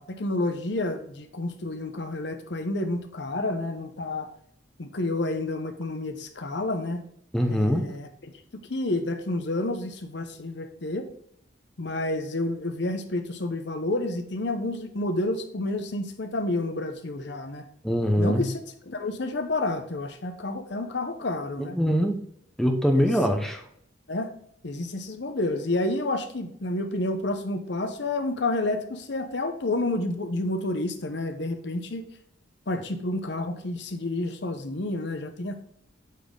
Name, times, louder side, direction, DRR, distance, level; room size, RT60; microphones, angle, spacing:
voice 1, 0.0-4.3 4.8-7.1 7.5-11.1 11.8-17.6 18.2-18.6 18.9-21.8 22.9-23.1 24.1-24.3 24.6-32.1 32.7-35.6, left 2 dB, 60° left, 7 dB, 0.8 m, -30 dB
voice 2, 7.3-8.0 17.8-18.4 21.6-22.2 22.6-23.6, equal, ahead, 3 dB, 0.7 m, -23 dB
8.3 x 4.2 x 3.7 m, 0.68 s
head